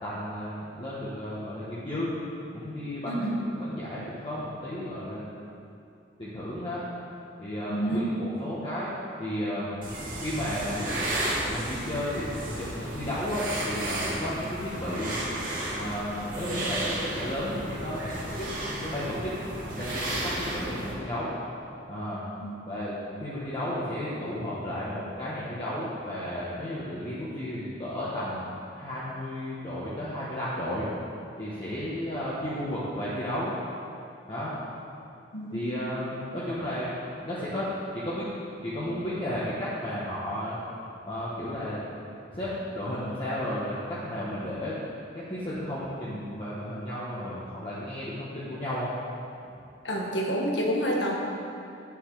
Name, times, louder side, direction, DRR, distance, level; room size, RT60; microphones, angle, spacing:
voice 1, 0.0-2.1 2.5-5.4 6.2-6.8 7.4-8.9 9.2-9.7 10.2-10.9 11.5-15.2 15.7-18.5 18.8-19.3 19.6-21.3 21.8-22.2 22.7-28.4 28.8-30.9 31.4-33.5 34.3-34.6 35.5-36.9 37.2-38.3 38.6-40.6 41.1-41.8 42.3-44.7 45.1-48.9, left 1 dB, 30° left, -10 dB, 1.4 m, -33 dB
voice 2, 3.1-3.4 7.7-8.0 22.4-22.5 35.3-35.7 49.8-51.1, right 1 dB, 70° left, -1 dB, 1.5 m, -28 dB
sound 1, 9.8-20.9, right 1 dB, 50° right, 2.0 m, -33 dB
9.3 x 7.1 x 4.9 m, 2.6 s
head